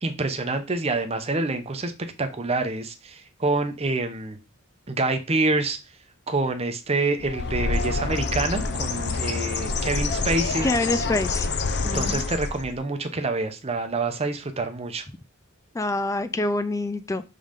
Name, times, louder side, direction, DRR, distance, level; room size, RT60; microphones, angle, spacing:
voice 1, 0.0-1.9 2.2-4.4 4.9-5.8 6.3-10.7 11.9-15.0, right 3 dB, 30° right, 7 dB, 0.8 m, -27 dB
Bird, 7.2-12.8, left 4 dB, 50° left, 0.7 m, -27 dB
voice 2, 10.6-11.5 11.8-12.2 15.7-17.2, left 2 dB, 15° left, 11 dB, 0.3 m, -26 dB
5.4 x 3.9 x 5.1 m, 0.28 s
head